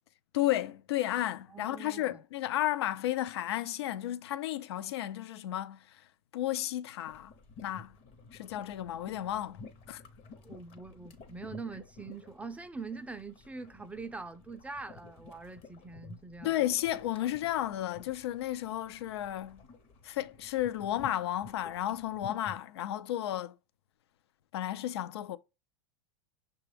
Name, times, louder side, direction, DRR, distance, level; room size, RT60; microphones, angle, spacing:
voice 1, 0.3-6.1 6.3-7.3 7.6-8.0 8.3-9.6 9.9-10.0 16.4-19.6 20.0-23.5 24.5-25.4, left 13 dB, 80° left, 0.4 m, -33 dB
voice 2, 1.5-2.2 10.4-16.7, right 4 dB, 10° right, 0.3 m, -44 dB
sound 1, 7.1-22.6, left 3 dB, 45° left, 0.8 m, -53 dB
6.0 x 2.2 x 3.3 m
hypercardioid pair, 115°, 13 cm